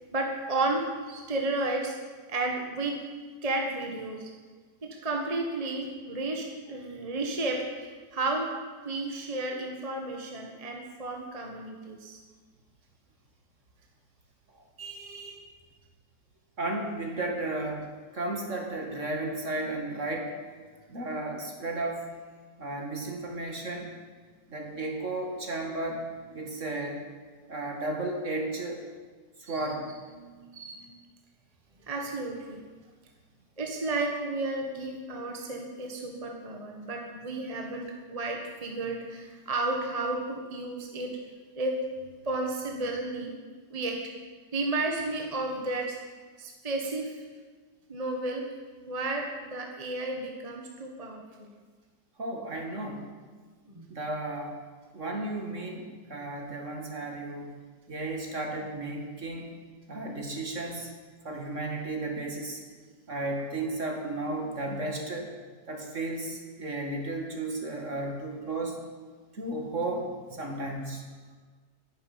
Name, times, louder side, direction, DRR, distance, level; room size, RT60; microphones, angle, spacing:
voice 1, 0.1-1.9 2.3-3.0 3.4-4.3 5.0-8.5 8.8-12.2 14.8-15.4 26.4-26.5 29.5-29.7 30.2-31.0 31.9-32.6 33.6-41.2 41.5-41.8 42.0-43.3 43.7-44.0 44.5-46.0 46.4-47.1 47.9-48.5 48.9-51.5 53.7-53.8, right 2 dB, 20° right, 1 dB, 1.6 m, -32 dB
voice 2, 16.6-20.3 20.9-22.1 22.6-23.9 24.5-26.0 26.3-27.0 27.5-28.8 29.4-29.9 52.2-53.1 53.9-54.6 54.9-57.5 57.9-59.6 59.9-60.9 61.2-62.6 63.1-65.3 65.7-68.8 69.3-71.0, right 2 dB, 45° right, 2 dB, 2.6 m, -34 dB
11.0 x 11.0 x 9.6 m, 1.4 s
omnidirectional pair, 1.8 m